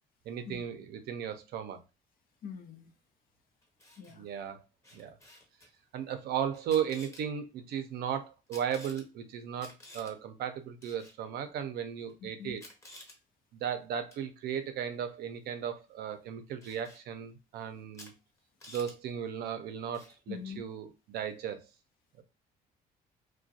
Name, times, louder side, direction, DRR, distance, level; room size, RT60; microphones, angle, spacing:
voice 1, 0.3-1.8 4.1-4.6 4.9-5.2 5.9-12.6 13.6-18.1 18.7-21.6 22.2-22.3, right 8 dB, 70° right, 0.5 m, -36 dB
voice 2, 2.4-2.9 4.0-4.2 12.2-12.6 20.3-20.6, left 7 dB, 60° left, 0.6 m, -43 dB
Camera, 3.6-4.1 4.8-5.7 6.5-7.2 8.5-9.0 9.6-10.1 10.8-11.2 12.1-12.2 12.6-13.2 14.1-14.3 16.6-17.0 17.9-18.1 18.4-18.9 19.9-20.2, left 1 dB, 15° left, 0.8 m, -52 dB
2.4 x 2.2 x 2.6 m
cardioid pair, 110°, 17 cm